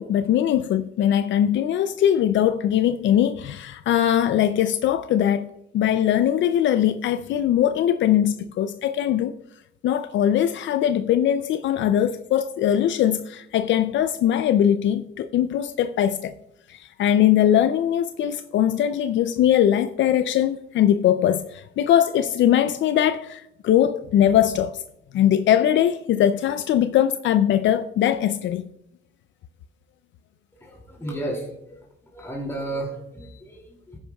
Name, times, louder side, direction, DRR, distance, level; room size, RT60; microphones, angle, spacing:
voice 1, 0.0-5.5 5.7-9.3 9.8-16.3 16.7-24.8 25.1-28.7, left 10 dB, 70° left, 0.5 m, -21 dB
voice 2, 30.6-31.9 32.1-34.0, right 1 dB, 15° left, 2.6 m, -33 dB
13.0 x 9.9 x 2.3 m
cardioid pair, 90°, 20 cm